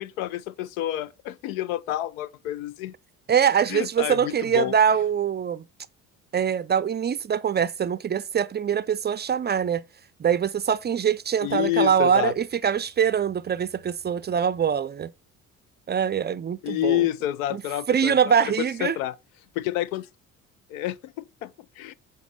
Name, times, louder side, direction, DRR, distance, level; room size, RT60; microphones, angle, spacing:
voice 1, 0.0-2.9 3.7-4.7 11.4-12.3 16.6-19.1 19.6-20.1 20.7-21.9, left 14 dB, 80° left, 0.5 m, -29 dB
voice 2, 3.3-5.6 6.3-9.8 10.2-15.1 15.9-17.1 17.5-17.6 17.9-19.0, right 8 dB, 25° right, 0.4 m, -23 dB
7.1 x 4.2 x 4.7 m
hypercardioid pair, 55°, 42 cm